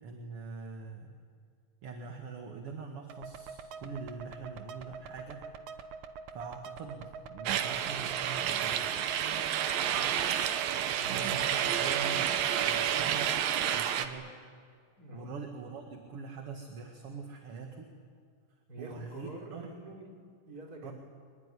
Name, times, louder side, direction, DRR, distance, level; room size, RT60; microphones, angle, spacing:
voice 1, 0.0-1.1 1.8-5.5 6.3-8.9 11.1-13.3 13.7-14.4 15.1-17.9 18.8-19.8 20.8-20.9, right 4 dB, 45° right, 3 dB, 2.3 m, -43 dB
sound 1, 3.1-13.8, right 5 dB, 65° right, 2.4 m, -45 dB
sound 2, 7.5-14.1, right 10 dB, 85° right, 2.9 m, -30 dB
voice 2, 9.8-10.1 11.0-11.3 11.8-12.0 15.0-15.3 18.7-20.1 20.5-20.9, right 2 dB, 25° right, 0 dB, 4.2 m, -46 dB
24.5 x 21.5 x 9.9 m, 2.1 s
omnidirectional pair, 4.0 m